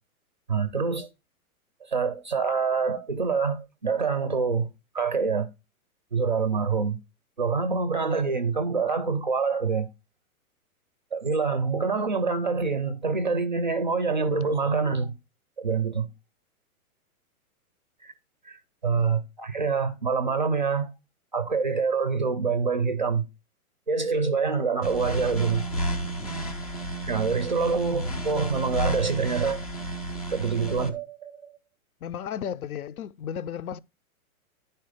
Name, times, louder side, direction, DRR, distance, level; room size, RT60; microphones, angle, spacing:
voice 1, 0.5-1.1 1.9-4.7 4.9-5.5 6.1-7.0 7.4-9.9 11.1-15.1 15.6-16.1 18.0-18.1 18.5-20.9 21.3-23.2 23.9-25.7 27.1-29.6 30.3-31.5, right 5 dB, 35° right, 0.4 m, -26 dB
sound 1, 24.8-30.9, right 1 dB, 30° left, 0.4 m, -32 dB
voice 2, 32.0-33.8, left 8 dB, 75° left, 0.6 m, -34 dB
10.5 x 4.4 x 4.9 m
hypercardioid pair, 175°, 44 cm